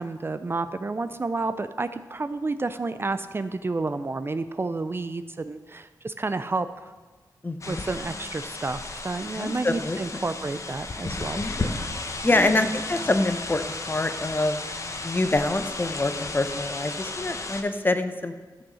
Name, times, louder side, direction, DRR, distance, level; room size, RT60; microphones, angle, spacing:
voice 1, 0.0-6.7 7.7-11.9 12.2-12.7, right 3 dB, 30° right, 11 dB, 0.5 m, -30 dB
voice 2, 7.4-7.8 9.3-10.0 11.3-11.7 12.2-14.6 15.0-18.3, left 2 dB, 30° left, 9 dB, 0.8 m, -26 dB
sound 1, 7.6-17.6, left 3 dB, 45° left, 1.1 m, -34 dB
13.0 x 6.2 x 6.3 m, 1.3 s
wide cardioid pair, 85°, 7 cm